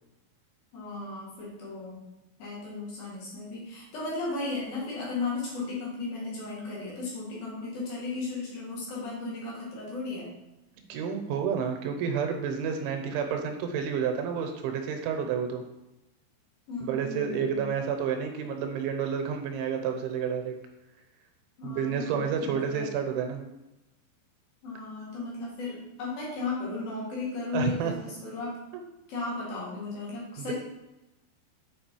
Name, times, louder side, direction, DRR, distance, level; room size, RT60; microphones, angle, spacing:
voice 1, 0.7-2.0 2.4-10.3 16.7-17.7 21.6-22.9 24.6-28.6 29.1-30.5, left 3 dB, 60° left, -6 dB, 3.5 m, -35 dB
voice 2, 10.9-15.6 16.9-20.6 21.6-23.4 27.5-27.9 30.4-30.5, right 7 dB, 85° right, 4 dB, 3.3 m, -30 dB
7.5 x 5.3 x 4.5 m, 0.97 s
omnidirectional pair, 5.3 m